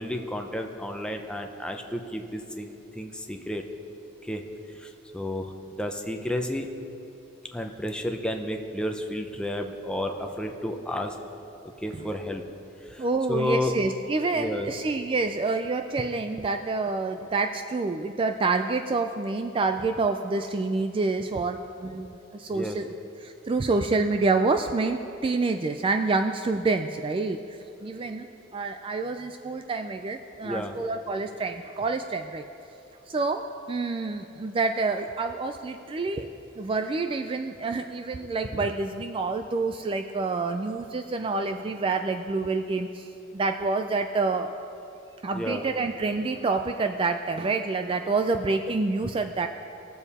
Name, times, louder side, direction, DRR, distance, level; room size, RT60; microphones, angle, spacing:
voice 1, 0.0-3.6 4.3-4.4 4.8-5.5 5.8-6.7 7.5-11.1 11.8-12.4 12.9-13.7 14.3-14.7 22.5-22.8 30.4-30.7 45.3-45.6, left 1 dB, 5° left, 4 dB, 0.7 m, -31 dB
voice 2, 13.0-22.9 23.2-28.3 28.5-32.5 33.1-36.3 36.6-44.5 45.2-49.5, right 3 dB, 25° right, 7 dB, 0.3 m, -27 dB
19.0 x 7.0 x 4.2 m, 2.8 s
head